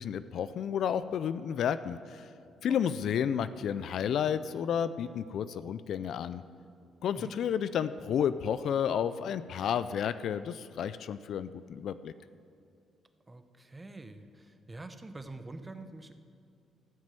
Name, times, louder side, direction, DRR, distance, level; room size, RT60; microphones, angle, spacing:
voice 1, 0.0-2.3 2.6-6.4 7.0-12.1, left 8 dB, 70° left, 14 dB, 0.4 m, -31 dB
voice 2, 13.3-16.1, right 2 dB, 20° right, 9 dB, 0.9 m, -45 dB
13.5 x 6.2 x 7.6 m, 2.3 s
cardioid pair, 90°, 0 cm